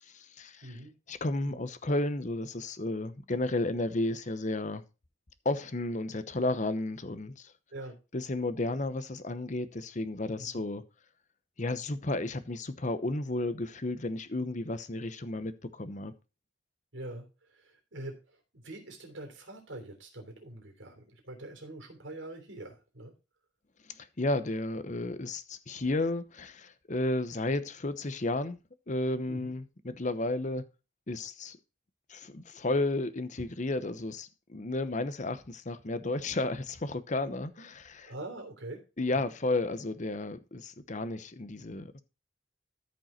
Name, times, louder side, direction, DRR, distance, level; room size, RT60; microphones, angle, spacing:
voice 1, 0.1-0.8 1.1-4.8 5.4-7.5 8.1-10.8 11.6-16.1 23.8-28.6 28.9-30.7 31.1-31.6 32.1-38.1 39.0-42.0, left 2 dB, 40° left, 0.9 m, -33 dB
voice 2, 0.6-0.9 1.4-1.7 6.1-6.2 7.7-8.0 10.3-10.6 16.9-23.1 29.3-29.5 38.0-38.8 39.1-39.3, right 1 dB, 85° right, 3.3 m, -44 dB
13.5 x 5.4 x 4.4 m
head